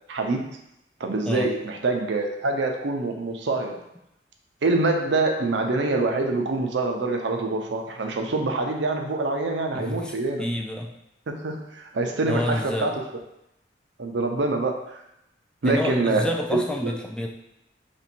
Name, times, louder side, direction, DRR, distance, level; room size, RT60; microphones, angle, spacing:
voice 1, 0.1-0.4 1.0-3.8 4.6-10.5 11.3-12.9 14.0-14.8 15.6-16.9, right 3 dB, 70° right, 3 dB, 0.5 m, -25 dB
voice 2, 9.7-10.9 12.3-13.0 15.6-17.3, left 1 dB, 5° left, 1 dB, 0.3 m, -28 dB
3.0 x 2.6 x 4.4 m, 0.83 s
head